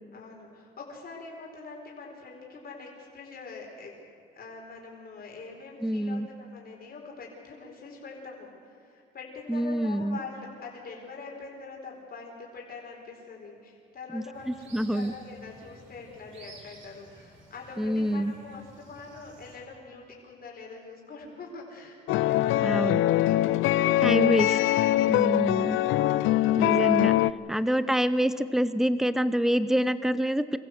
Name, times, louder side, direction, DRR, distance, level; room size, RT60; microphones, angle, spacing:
voice 1, 0.1-3.9 4.3-23.9 24.2-24.4 24.9-25.4 27.5-27.7, left 4 dB, 50° left, -1 dB, 4.5 m, -44 dB
voice 2, 5.8-6.3 9.5-10.2 14.1-15.1 17.8-18.3 22.6-23.0 24.0-24.6 25.1-25.8 26.6-27.1 27.5-30.6, equal, ahead, 14 dB, 0.9 m, -26 dB
sound 1, 14.3-19.6, right 2 dB, 75° right, 4.9 m, -52 dB
sound 2, 22.1-27.3, left 14 dB, 90° left, 0.5 m, -23 dB
25.0 x 15.0 x 8.0 m, 2.5 s
cardioid pair, 90°, 20 cm